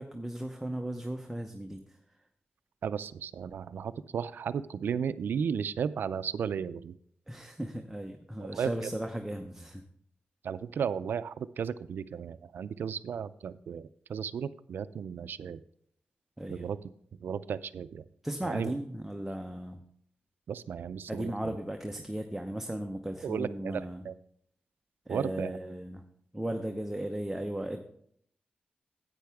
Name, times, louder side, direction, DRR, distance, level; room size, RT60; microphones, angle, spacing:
voice 1, 0.0-2.0 7.3-9.8 16.4-16.7 18.2-19.8 21.1-24.0 25.1-26.0 26.3-27.8, right 1 dB, 10° right, 4 dB, 0.7 m, -36 dB
voice 2, 2.8-7.0 8.4-8.9 10.4-15.6 16.5-16.8 17.2-18.0 18.4-18.7 20.5-21.3 23.2-24.1 25.1-25.6, right 7 dB, 85° right, 15 dB, 0.4 m, -34 dB
10.5 x 8.5 x 3.5 m, 0.66 s
wide cardioid pair, 90°, 3 cm